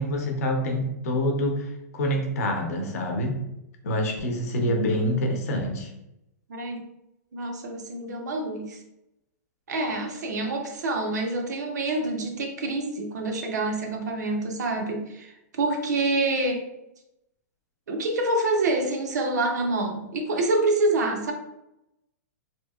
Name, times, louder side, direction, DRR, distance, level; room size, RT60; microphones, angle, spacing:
voice 1, 0.0-1.7 1.9-3.4 3.8-5.9, equal, 60° left, 2 dB, 0.7 m, -26 dB
voice 2, 6.5-6.9 7.3-8.8 9.7-16.7 17.9-21.3, right 2 dB, 90° right, 3 dB, 0.6 m, -27 dB
2.8 x 2.7 x 2.3 m, 0.86 s
hypercardioid pair, 160°, 9 cm